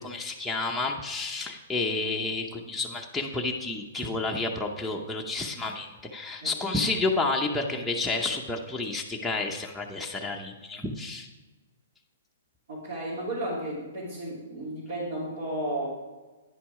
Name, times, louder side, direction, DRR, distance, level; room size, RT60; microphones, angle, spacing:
voice 1, 0.0-11.3, left 3 dB, 5° left, -2 dB, 0.7 m, -30 dB
voice 2, 12.7-15.9, right 1 dB, 65° right, -7 dB, 2.7 m, -33 dB
10.0 x 5.9 x 4.8 m, 1.2 s
hypercardioid pair, 140°, 0 cm